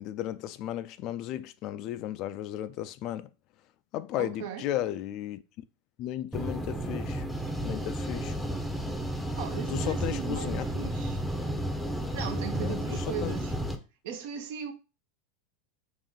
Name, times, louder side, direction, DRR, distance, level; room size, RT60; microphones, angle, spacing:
voice 1, 0.0-3.3 3.9-5.4 6.0-7.3 7.6-8.4 9.7-10.7 12.5-13.3, left 12 dB, 50° left, 0.3 m, -34 dB
voice 2, 4.2-4.7 9.4-11.2 12.1-13.5 14.0-14.7, right 8 dB, 65° right, 0.8 m, -38 dB
sound 1, 6.3-13.8, right 1 dB, ahead, 0.6 m, -32 dB
3.8 x 2.6 x 3.7 m
hypercardioid pair, 95°, 0 cm